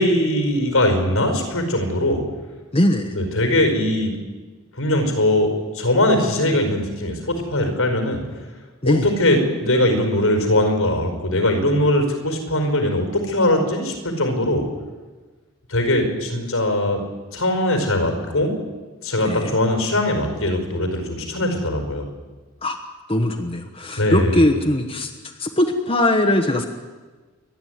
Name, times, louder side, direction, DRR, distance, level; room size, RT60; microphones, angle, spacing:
voice 1, 0.0-2.2 3.1-4.1 4.8-8.2 8.8-14.6 15.7-17.0 17.3-18.5 19.0-22.0 24.0-24.4, left 1 dB, 75° left, 5 dB, 4.9 m, -20 dB
voice 2, 2.7-3.2 8.8-9.1 19.2-19.6 22.6-22.8 23.1-25.1 25.4-26.6, left 1 dB, 25° left, 2 dB, 1.2 m, -20 dB
28.5 x 11.5 x 9.5 m, 1.3 s
head